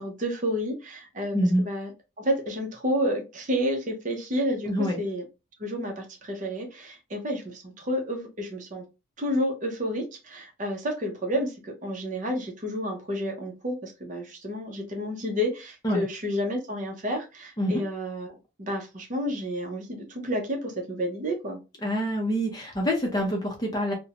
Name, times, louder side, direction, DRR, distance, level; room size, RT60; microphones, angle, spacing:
voice 1, 0.0-1.9 2.2-5.2 5.6-8.8 9.2-21.6, equal, 40° right, 0.7 m, -30 dB
voice 2, 1.3-1.6 4.7-5.0 15.8-16.0 17.6-17.8 21.8-23.9, equal, 20° left, 0.6 m, -26 dB
2.5 x 2.1 x 2.8 m
head